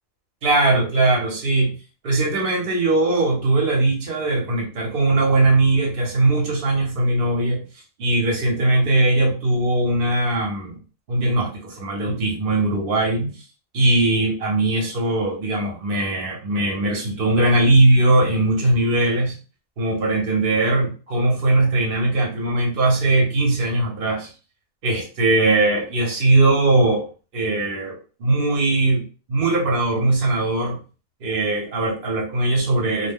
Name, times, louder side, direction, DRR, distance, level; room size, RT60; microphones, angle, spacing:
voice 1, 0.4-1.7 2.0-7.6 8.0-10.8 11.1-13.4 13.7-19.4 19.8-24.3 24.8-27.1 27.3-29.0 29.3-30.8 31.2-33.1, right 2 dB, 45° right, -1 dB, 1.0 m, -20 dB
2.4 x 2.1 x 3.5 m, 0.36 s
omnidirectional pair, 1.4 m